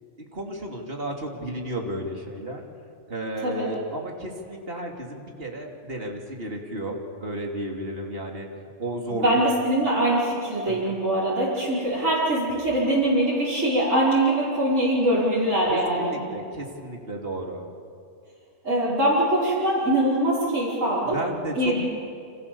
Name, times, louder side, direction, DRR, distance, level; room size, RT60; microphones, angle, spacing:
voice 1, 0.3-2.6 3.1-9.4 10.7-10.9 15.7-17.7 21.0-21.8, right 1 dB, 50° right, 0 dB, 3.4 m, -33 dB
voice 2, 9.1-16.2 18.6-21.2 21.5-21.9, right 1 dB, 80° right, -8 dB, 5.9 m, -23 dB
29.5 x 27.0 x 7.2 m, 2.4 s
omnidirectional pair, 1.3 m